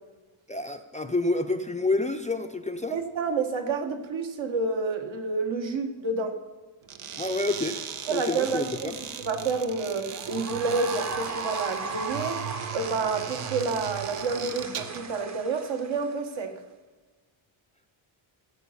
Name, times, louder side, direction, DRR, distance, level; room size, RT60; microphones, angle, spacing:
voice 1, 0.5-3.0 7.2-7.8 8.1-9.0, left 2 dB, 15° left, 7 dB, 0.5 m, -28 dB
voice 2, 2.9-6.4 8.1-12.4 12.7-16.5, right 4 dB, 65° right, 5 dB, 1.6 m, -29 dB
sound 1, 6.8-15.1, right 8 dB, 90° right, 1.1 m, -38 dB
sound 2, 10.1-16.4, right 4 dB, 35° right, 1.0 m, -37 dB
16.5 x 7.8 x 5.7 m, 1.3 s
wide cardioid pair, 165°, 49 cm